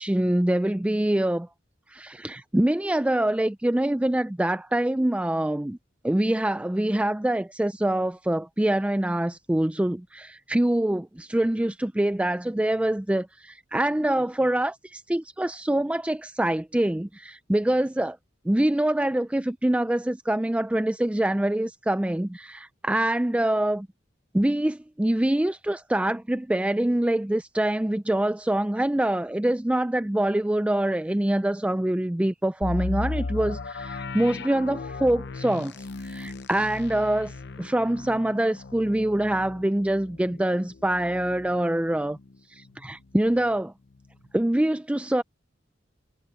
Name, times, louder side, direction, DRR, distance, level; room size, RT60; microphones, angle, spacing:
voice 1, 0.0-1.5 1.9-5.8 6.0-18.2 18.5-23.9 24.3-35.7 36.0-42.2 42.5-43.7 44.3-45.2, right 1 dB, 5° right, 0.3 m, -25 dB
sound 1, 32.6-42.3 42.7-42.8 43.3-43.5, left 3 dB, 65° left, 0.7 m, -36 dB
head